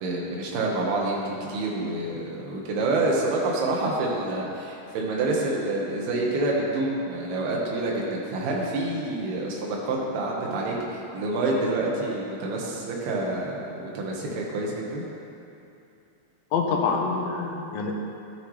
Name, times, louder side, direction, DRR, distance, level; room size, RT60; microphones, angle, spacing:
voice 1, 0.0-15.1, right 2 dB, 80° right, -3 dB, 3.2 m, -27 dB
voice 2, 16.5-17.9, left 5 dB, 75° left, 1 dB, 2.3 m, -26 dB
13.5 x 7.8 x 3.2 m, 2.7 s
omnidirectional pair, 4.5 m